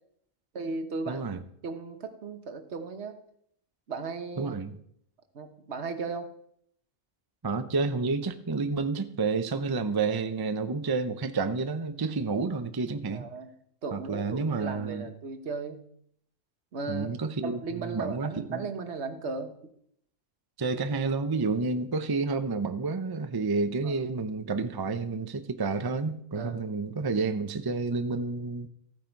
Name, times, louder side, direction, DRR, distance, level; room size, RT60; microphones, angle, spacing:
voice 1, 0.5-1.2 1.6-3.2 3.9-4.5 5.3-6.3 13.1-13.5 13.8-15.8 16.7-17.1 17.4-19.5 23.8-24.0 26.3-26.6, right 4 dB, 55° right, 1.5 m, -36 dB
voice 2, 1.1-1.4 4.4-4.8 7.4-13.3 13.9-15.1 16.9-18.6 20.6-28.7, right 4 dB, 25° right, 0.5 m, -30 dB
14.5 x 9.3 x 4.6 m
omnidirectional pair, 1.4 m